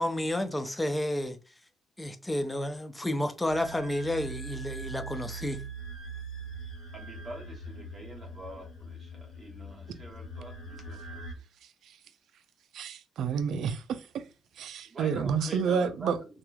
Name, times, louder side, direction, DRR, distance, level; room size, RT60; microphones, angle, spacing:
voice 1, 0.0-1.4 2.0-5.6, left 1 dB, 10° left, 0.4 m, -31 dB
sound 1, 3.5-11.3, right 3 dB, 70° left, 1.0 m, -42 dB
voice 2, 6.9-11.2 14.8-16.4, right 1 dB, 30° right, 0.9 m, -45 dB
voice 3, 12.7-13.8 14.6-16.2, right 6 dB, 75° right, 0.3 m, -29 dB
2.9 x 2.4 x 2.2 m
cardioid pair, 90°, 0 cm